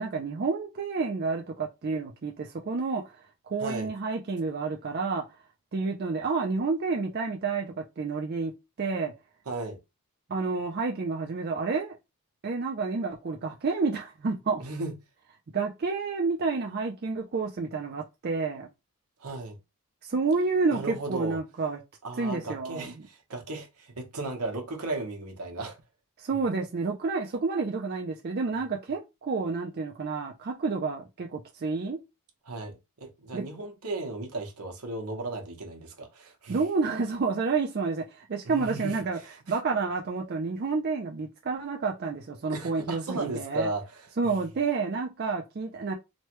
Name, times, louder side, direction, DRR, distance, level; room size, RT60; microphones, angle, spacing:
voice 1, 0.0-3.1 3.5-5.2 5.7-8.5 8.8-9.1 10.3-12.0 12.4-14.6 15.5-18.7 20.0-21.8 22.2-22.9 26.2-32.0 33.3-33.4 36.5-39.2 39.5-43.7 44.2-45.9, right 4 dB, 45° right, 0.4 m, -29 dB
voice 2, 3.6-3.9 9.5-9.8 14.6-14.9 19.2-19.6 20.7-21.4 22.0-25.8 32.5-36.6 38.4-39.0 39.5-39.6 42.5-44.3, right 2 dB, 80° right, 0.9 m, -35 dB
3.1 x 2.2 x 3.0 m
head